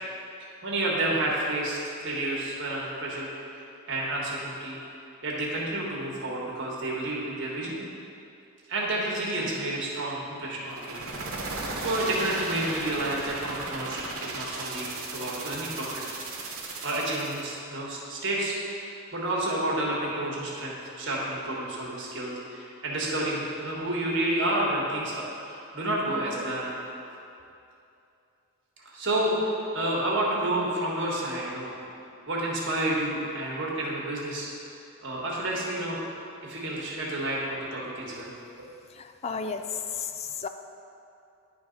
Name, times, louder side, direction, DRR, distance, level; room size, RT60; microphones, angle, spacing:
voice 1, 0.4-3.3 3.9-4.8 5.2-7.8 8.7-11.0 11.8-16.0 16.8-18.9 19.1-26.8 28.8-31.8 32.3-34.5 35.0-36.0 36.4-38.3, right 1 dB, 55° right, -4 dB, 1.5 m, -30 dB
sound 1, 10.7-17.5, right 3 dB, 80° right, 1.1 m, -36 dB
voice 2, 38.9-40.5, left 6 dB, 30° left, 8 dB, 0.3 m, -33 dB
10.5 x 3.5 x 5.2 m, 2.7 s
head